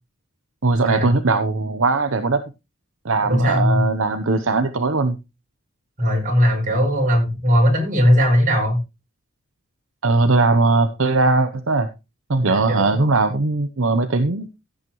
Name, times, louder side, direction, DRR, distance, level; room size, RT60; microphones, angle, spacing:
voice 1, 0.6-2.4 3.0-5.2 10.0-11.9 12.3-14.5, right 3 dB, 70° right, 8 dB, 0.9 m, -19 dB
voice 2, 3.3-3.8 6.0-8.8 12.5-13.0, equal, 40° right, 1 dB, 5.9 m, -18 dB
15.5 x 8.8 x 3.1 m, 0.27 s
head